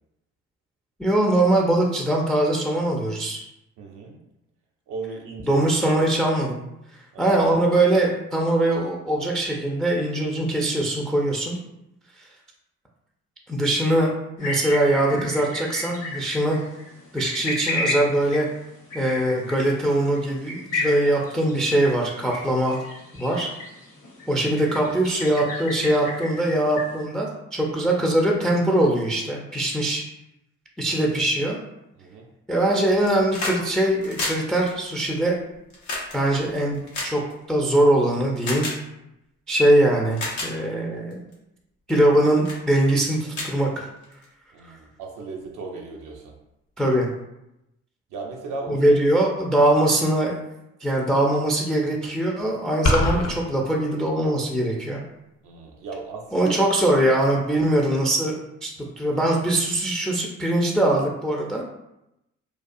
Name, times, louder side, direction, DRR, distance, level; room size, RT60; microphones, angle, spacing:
voice 1, 1.0-3.4 5.5-6.6 7.2-11.6 13.5-14.1 14.4-16.6 17.1-18.5 18.9-22.8 23.2-23.5 24.3-30.0 30.8-31.6 32.5-35.4 36.1-37.2 37.5-38.7 39.5-41.2 41.9-43.9 44.6-44.7 46.8-47.1 48.7-50.4 50.8-55.0 56.3-61.6, right 1 dB, ahead, -2 dB, 0.3 m, -22 dB
voice 2, 3.8-4.2 4.9-6.0 7.1-7.4 32.0-32.3 44.5-46.3 48.1-48.9 55.4-56.6, right 3 dB, 60° right, 0 dB, 0.5 m, -36 dB
sound 1, 14.4-27.0, left 2 dB, 70° left, 1.0 m, -33 dB
sound 2, 32.9-33.6 33.9-37.8 38.4-38.8 39.6-39.7 40.1-40.5 41.1-41.3 41.9-42.1 42.4-42.6 43.0-43.1 43.3-44.3 45.4-45.5, left 2 dB, 90° left, 0.6 m, -31 dB
sound 3, 52.8-53.3, left 2 dB, 50° left, 0.6 m, -20 dB
2.3 x 2.2 x 2.5 m, 0.88 s
hypercardioid pair, 50°, 35 cm